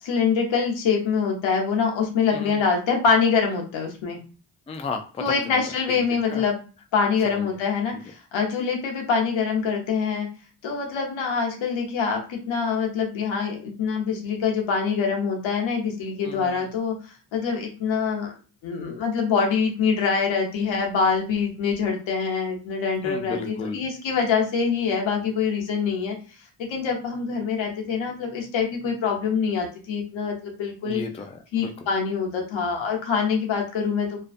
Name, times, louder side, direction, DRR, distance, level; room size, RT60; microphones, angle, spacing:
voice 1, 0.0-4.2 5.2-6.6 6.9-10.3 10.6-18.3 18.6-26.2 26.6-31.0 31.5-34.2, left 5 dB, 85° left, 1 dB, 0.9 m, -25 dB
voice 2, 2.3-2.7 4.7-5.4 5.9-6.4 7.2-7.6 7.9-8.0 16.2-16.7 23.0-23.8 30.8-31.7, left 4 dB, 15° left, 5 dB, 0.3 m, -34 dB
2.5 x 2.2 x 2.5 m, 0.37 s
cardioid pair, 70°, 45 cm